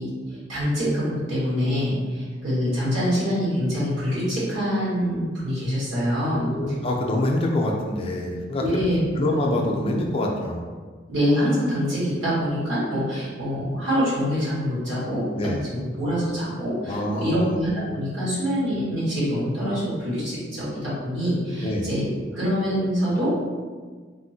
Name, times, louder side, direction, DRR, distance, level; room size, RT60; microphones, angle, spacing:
voice 1, 0.0-6.5 8.6-9.0 9.3-9.6 11.1-22.1 22.3-23.3, equal, 75° right, -9 dB, 1.4 m, -25 dB
voice 2, 6.3-8.6 9.2-10.7 15.3-15.6 16.9-17.6 21.6-21.9, left 1 dB, 30° left, 1 dB, 0.3 m, -25 dB
3.4 x 2.1 x 2.7 m, 1.5 s
head